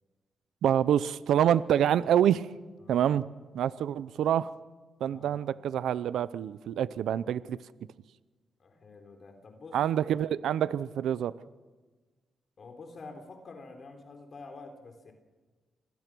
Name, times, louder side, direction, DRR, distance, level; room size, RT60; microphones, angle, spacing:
voice 1, 0.6-2.5 2.9-3.2 3.5-4.5 5.0-7.6 9.7-11.3, right 10 dB, 85° right, 16 dB, 0.6 m, -26 dB
voice 2, 5.1-5.5 8.6-9.8 12.6-15.1, left 3 dB, 50° left, 4 dB, 3.6 m, -48 dB
27.5 x 20.5 x 6.2 m, 1.3 s
cardioid pair, 85°, 0 cm